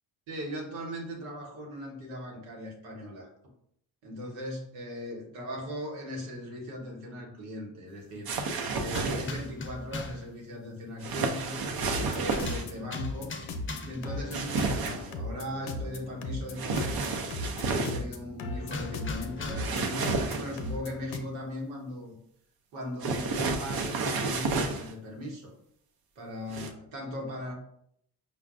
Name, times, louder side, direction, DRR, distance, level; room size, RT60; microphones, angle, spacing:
voice 1, 0.3-3.3 4.0-8.3 8.8-11.6 12.0-13.3 13.8-17.3 17.6-20.0 20.4-22.2 22.7-25.5 26.2-27.5, left 1 dB, 90° right, -1 dB, 1.2 m, -38 dB
sound 1, 8.3-9.5 11.0-12.7 14.3-15.1 16.6-18.0 19.6-20.7 23.0-24.9 26.5-26.7, right 3 dB, 50° right, 0.7 m, -31 dB
sound 2, 8.9-10.3 12.1-14.1 18.7-19.9, left 3 dB, 25° left, 0.6 m, -40 dB
sound 3, 11.9-21.2, left 2 dB, 70° left, 0.7 m, -38 dB
5.1 x 2.2 x 2.5 m, 0.69 s
supercardioid pair, 65°, 49 cm